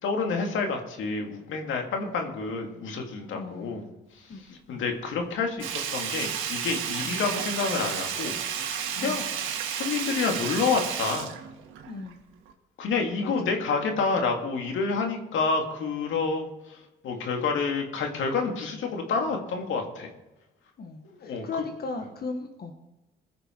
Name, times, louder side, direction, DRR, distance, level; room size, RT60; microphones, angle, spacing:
voice 1, 0.0-3.9 4.7-9.3 9.7-11.3 12.8-16.8 17.0-20.1 21.2-21.7, left 4 dB, 75° left, 3 dB, 2.2 m, -28 dB
voice 2, 3.3-3.8 4.3-4.8 7.0-7.2 9.0-9.2 11.9-12.2 13.2-13.5 20.8-22.7, left 3 dB, 55° left, 4 dB, 1.4 m, -37 dB
Sink (filling or washing), 5.6-12.1 12.5-12.6, right 8 dB, 90° right, 1.7 m, -32 dB
20.0 x 6.8 x 4.5 m, 1.0 s
cardioid pair, 90°, 20 cm